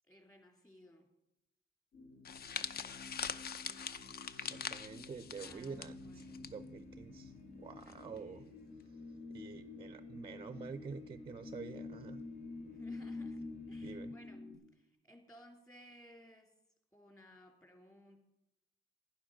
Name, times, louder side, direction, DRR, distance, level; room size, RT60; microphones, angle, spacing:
voice 1, 0.1-1.1 5.3-6.5 7.8-8.6 12.7-14.4 14.7-16.5 16.9-18.2, equal, 15° left, 3 dB, 2.8 m, -60 dB
sound 1, 1.9-14.6, left 3 dB, 75° left, 2.5 m, -49 dB
sound 2, 2.2-6.5 6.8-7.0 7.9-8.2, left 7 dB, 50° left, 0.6 m, -43 dB
voice 2, 4.3-8.5 9.3-12.2 13.8-14.1, right 5 dB, 25° right, 13 dB, 0.4 m, -48 dB
sound 3, 5.1-14.1, left 1 dB, 35° left, 3.1 m, -62 dB
11.5 x 10.0 x 5.1 m, 0.85 s
cardioid pair, 90°, 20 cm